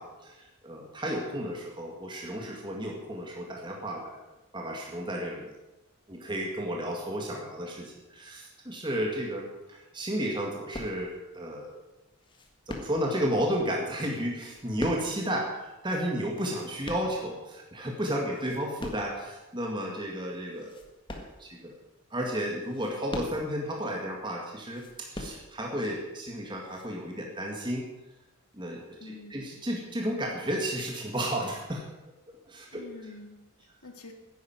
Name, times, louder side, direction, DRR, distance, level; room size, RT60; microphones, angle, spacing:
voice 1, 0.0-4.2 4.5-5.5 6.1-11.8 12.7-20.7 21.1-21.7 22.1-27.9 28.5-31.9 32.5-32.9, equal, 20° right, 0 dB, 2.0 m, -33 dB
sound 1, 10.7-11.3 12.2-13.3 14.2-15.4 16.2-17.6 18.1-19.2 19.7-19.8 20.5-21.8 22.5-23.7 24.6-25.8 26.6-26.9, left 1 dB, 20° left, 1.6 m, -41 dB
voice 2, 29.0-29.5 32.7-34.1, left 2 dB, 85° left, 6 dB, 2.1 m, -47 dB
10.5 x 10.5 x 9.1 m, 1.0 s
head